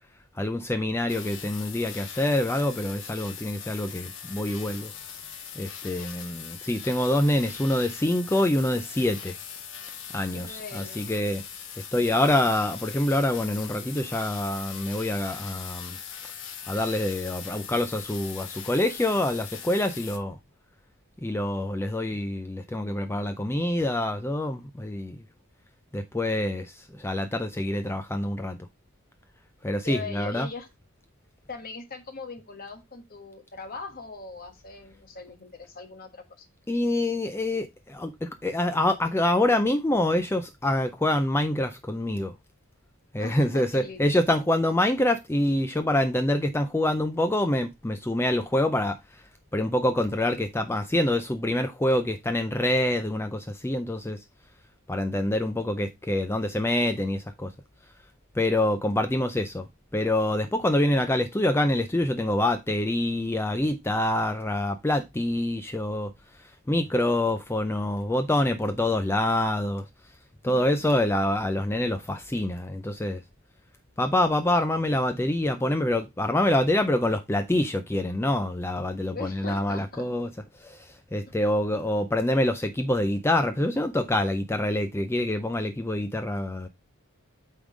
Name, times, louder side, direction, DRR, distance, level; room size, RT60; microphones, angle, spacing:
voice 1, 0.4-4.9 5.6-9.3 10.1-11.4 11.9-16.0 16.7-20.4 21.2-25.2 25.9-28.6 29.6-30.5 36.7-42.3 43.1-49.2 49.5-54.2 54.9-57.5 58.3-66.1 66.4-69.9 70.4-73.2 74.0-80.3 80.5-86.7, left 1 dB, 10° left, 0.4 m, -26 dB
sound 1, 1.1-20.2, left 8 dB, 55° left, 1.3 m, -40 dB
voice 2, 10.3-11.1 29.8-30.7 31.5-36.5 43.2-44.0 70.5-70.6 79.0-80.1, left 3 dB, 40° left, 1.3 m, -40 dB
8.4 x 3.7 x 4.9 m
head